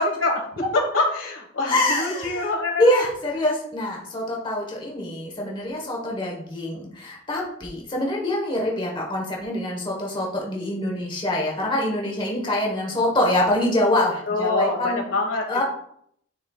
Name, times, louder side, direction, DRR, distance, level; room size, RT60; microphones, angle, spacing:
voice 1, 0.0-3.0 14.3-15.4, left 2 dB, 70° left, 2 dB, 1.4 m, -25 dB
voice 2, 1.7-2.4 2.8-15.0 15.5-15.6, left 1 dB, 25° left, -2 dB, 1.1 m, -25 dB
9.8 x 4.2 x 2.3 m, 0.68 s
head